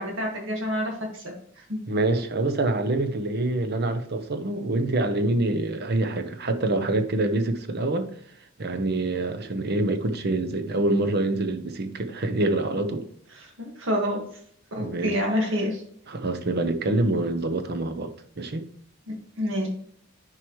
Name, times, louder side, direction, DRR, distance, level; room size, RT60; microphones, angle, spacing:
voice 1, 0.0-1.8 13.6-14.2 14.7-15.8 19.1-19.7, equal, 70° right, 1.8 m, -28 dB
voice 2, 1.9-8.1 8.6-13.1 14.8-15.2 16.1-18.7, right 2 dB, 55° right, 0.8 m, -26 dB
9.6 x 4.6 x 3.1 m
head